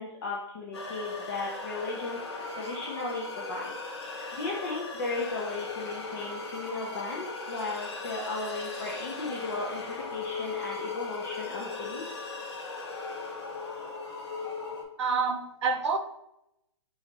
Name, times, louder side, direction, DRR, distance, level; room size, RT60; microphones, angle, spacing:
voice 1, 0.0-2.2 2.6-3.7 4.1-12.0, left 3 dB, 40° left, -3 dB, 0.8 m, -35 dB
sound 1, 0.7-14.8, left 3 dB, 60° left, 1.1 m, -38 dB
voice 2, 15.0-16.0, right 4 dB, 65° right, 6 dB, 0.7 m, -28 dB
6.1 x 2.8 x 2.9 m, 0.81 s
hypercardioid pair, 160°, 16 cm